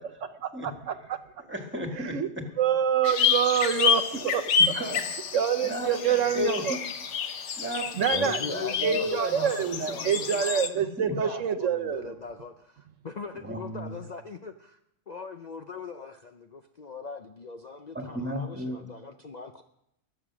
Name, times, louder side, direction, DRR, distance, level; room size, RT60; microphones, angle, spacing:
voice 1, 0.4-1.2 2.1-2.3 2.6-4.4 5.3-6.7 8.0-8.4 8.8-12.1, right 8 dB, 75° right, 10 dB, 1.2 m, -26 dB
voice 2, 1.5-2.5 4.1-4.3 4.6-5.1 5.6-6.8 7.6-10.1 11.0-11.2 13.4-13.9 17.9-18.8, left 1 dB, 10° right, 3 dB, 1.8 m, -34 dB
sound 1, 3.0-10.7, left 6 dB, 65° left, 1.1 m, -29 dB
voice 3, 8.1-14.8 15.1-19.6, left 4 dB, 45° left, 6 dB, 0.6 m, -41 dB
21.5 x 7.3 x 6.1 m, 0.80 s
omnidirectional pair, 1.3 m